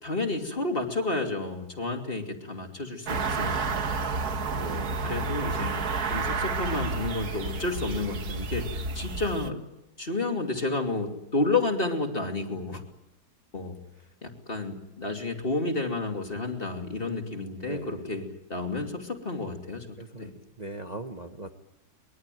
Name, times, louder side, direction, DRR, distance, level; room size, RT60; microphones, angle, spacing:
voice 1, 0.0-4.0 5.0-9.6 10.0-12.8 13.5-13.8 14.2-19.9 20.2-20.3, left 3 dB, 35° left, 4 dB, 2.9 m, -31 dB
sound 1, 3.1-9.5, right 4 dB, 70° right, 1.9 m, -30 dB
voice 2, 4.5-5.0 17.5-18.1 20.0-20.3 20.6-21.5, right 2 dB, 25° right, 5 dB, 1.4 m, -39 dB
24.0 x 22.5 x 9.2 m, 0.88 s
omnidirectional pair, 1.7 m